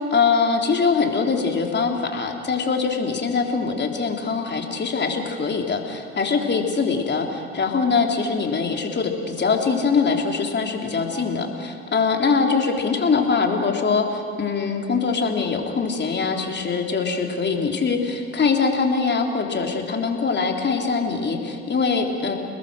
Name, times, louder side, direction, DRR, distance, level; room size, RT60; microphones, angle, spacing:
voice 1, 0.0-22.3, left 5 dB, 35° left, 3 dB, 3.6 m, -23 dB
29.5 x 20.0 x 6.5 m, 2.2 s
hypercardioid pair, 60°, 32 cm